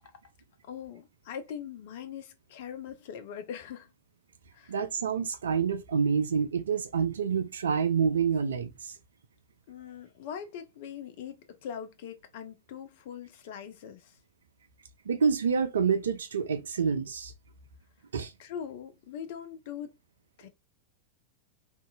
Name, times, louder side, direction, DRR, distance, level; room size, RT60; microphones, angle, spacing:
voice 1, 0.6-3.9 4.5-4.8 9.7-14.2 18.4-20.0 20.4-20.5, left 8 dB, 50° left, 0.5 m, -41 dB
voice 2, 4.7-8.9 15.1-17.3 18.1-18.3, right 6 dB, 65° right, 0.4 m, -27 dB
2.8 x 2.6 x 2.3 m
figure-of-eight pair, 90°, 0 cm